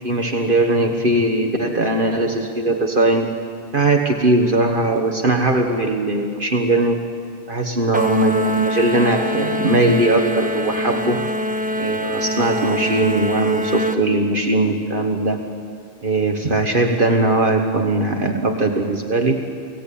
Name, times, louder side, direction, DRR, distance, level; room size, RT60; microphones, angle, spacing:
voice 1, 0.0-3.3 3.7-7.0 7.5-11.3 11.8-15.4 16.0-19.4, right 2 dB, 50° right, 3 dB, 1.6 m, -19 dB
sound 1, 7.9-14.0, equal, 10° right, 1.0 m, -24 dB
30.0 x 18.0 x 8.6 m, 2.2 s
omnidirectional pair, 1.2 m